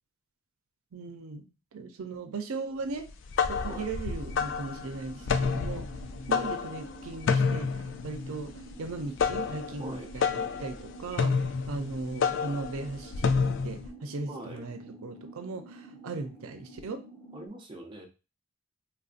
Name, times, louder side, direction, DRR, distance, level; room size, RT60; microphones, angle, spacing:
voice 1, 0.9-1.5 1.7-3.1 3.5-5.9 6.3-13.3 13.6-17.0, right 3 dB, 85° right, 7 dB, 0.5 m, -38 dB
sound 1, 3.1-13.9, left 5 dB, 60° left, 0.3 m, -30 dB
sound 2, 4.2-17.5, right 2 dB, 20° left, 1.2 m, -49 dB
voice 2, 14.3-14.6 17.3-18.1, right 1 dB, 20° right, 0 dB, 0.6 m, -42 dB
3.4 x 2.6 x 2.4 m, 0.30 s
head